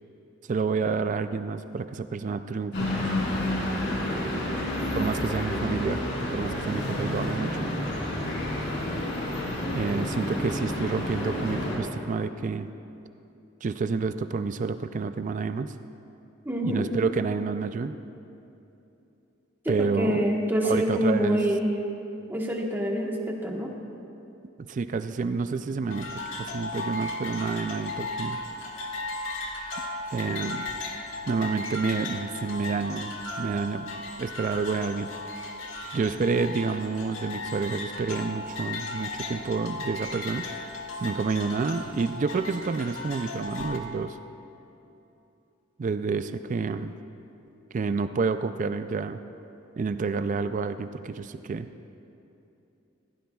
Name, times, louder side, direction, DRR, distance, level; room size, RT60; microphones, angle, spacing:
voice 1, 0.5-2.9 4.9-6.0 6.3-7.6 9.7-12.7 13.6-15.7 16.6-17.9 19.7-20.2 20.6-21.4 24.6-26.1 26.4-28.4 30.1-30.7 31.3-33.9 34.2-35.1 35.9-40.4 41.0-44.2 45.8-46.9 47.7-49.2 49.8-51.7, right 4 dB, 40° right, 10 dB, 0.3 m, -29 dB
sound 1, 2.7-11.8, left 1 dB, 60° left, 3.1 m, -29 dB
voice 2, 16.4-16.9 19.6-21.6 22.3-23.7, equal, 10° right, -1 dB, 1.2 m, -26 dB
sound 2, 25.9-43.8, left 2 dB, 80° left, 1.4 m, -36 dB
20.0 x 16.0 x 2.3 m, 2.8 s
head